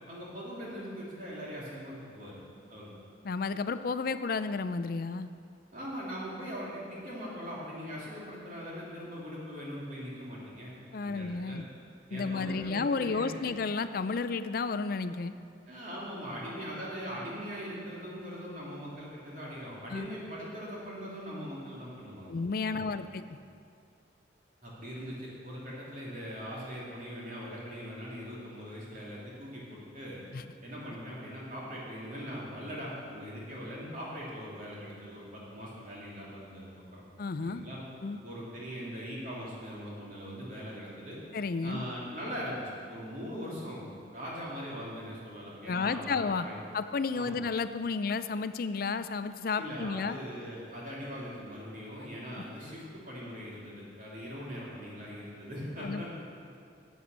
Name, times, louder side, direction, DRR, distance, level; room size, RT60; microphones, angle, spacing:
voice 1, 0.1-2.4 2.7-2.9 5.7-10.7 11.0-11.6 12.1-13.6 15.7-22.4 22.7-23.0 24.6-30.2 30.6-37.0 37.4-37.8 38.2-41.2 41.6-42.6 42.9-43.8 44.1-46.6 47.1-47.4 49.6-56.1, equal, 45° right, -6 dB, 3.1 m, -41 dB
voice 2, 3.2-5.3 10.9-11.6 12.1-15.4 19.9-20.1 22.3-23.2 30.3-30.4 37.2-37.7 38.0-38.2 41.3-41.8 45.7-46.5 46.7-50.2 52.0-52.1 55.8-56.1, left 4 dB, 50° left, 12 dB, 0.4 m, -32 dB
11.0 x 8.2 x 6.3 m, 2.4 s
head